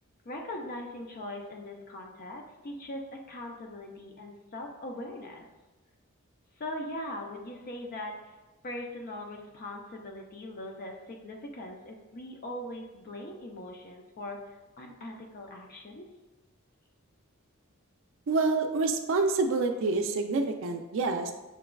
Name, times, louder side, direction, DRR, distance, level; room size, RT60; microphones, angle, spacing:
voice 1, 0.2-5.4 6.6-8.3 8.6-14.4 14.8-16.1, left 1 dB, 45° left, 1 dB, 0.5 m, -40 dB
voice 2, 18.3-21.3, right 3 dB, 65° right, 5 dB, 0.4 m, -27 dB
5.8 x 2.3 x 2.2 m, 1.1 s
head